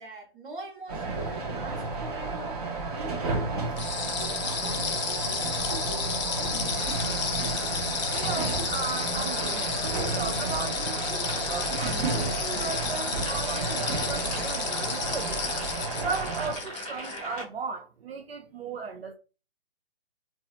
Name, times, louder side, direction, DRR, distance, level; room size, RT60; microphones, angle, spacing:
voice 1, 0.0-6.5, right 2 dB, 55° right, 1.1 m, -44 dB
sound 1, 0.9-16.6, right 3 dB, 40° right, 0.6 m, -32 dB
sound 2, 3.8-17.2, left 6 dB, 45° left, 0.6 m, -32 dB
sound 3, 6.8-17.4, equal, ahead, 1.1 m, -40 dB
voice 2, 8.1-15.5 16.0-19.1, right 5 dB, 85° right, 0.5 m, -36 dB
2.6 x 2.2 x 2.4 m
figure-of-eight pair, 140°, 30 cm